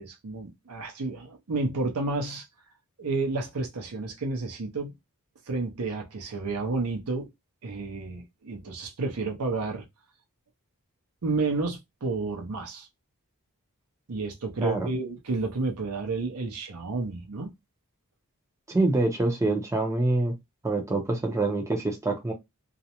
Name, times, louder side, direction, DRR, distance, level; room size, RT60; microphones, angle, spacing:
voice 1, 0.0-2.4 3.0-4.9 5.5-7.3 7.6-9.8 11.2-12.9 14.1-17.5, right 3 dB, 75° right, 0.6 m, -31 dB
voice 2, 18.7-20.3 20.6-22.3, right 2 dB, 15° right, 0.5 m, -25 dB
2.4 x 2.0 x 2.8 m
head